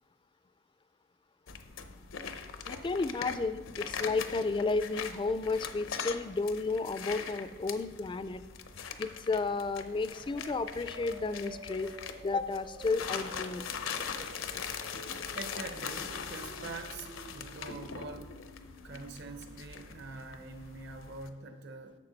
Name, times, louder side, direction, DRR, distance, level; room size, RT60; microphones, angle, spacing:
sound 1, 1.5-21.3, left 6 dB, 85° left, 0.7 m, -41 dB
voice 1, 2.7-8.4 9.0-11.9 12.2-13.7, left 3 dB, 25° left, 13 dB, 0.3 m, -32 dB
sound 2, 9.1-20.8, right 1 dB, 75° right, 2.4 m, -52 dB
voice 2, 15.3-18.4 18.8-22.0, right 3 dB, 55° right, 7 dB, 0.9 m, -44 dB
11.5 x 7.0 x 4.0 m, 1.2 s
head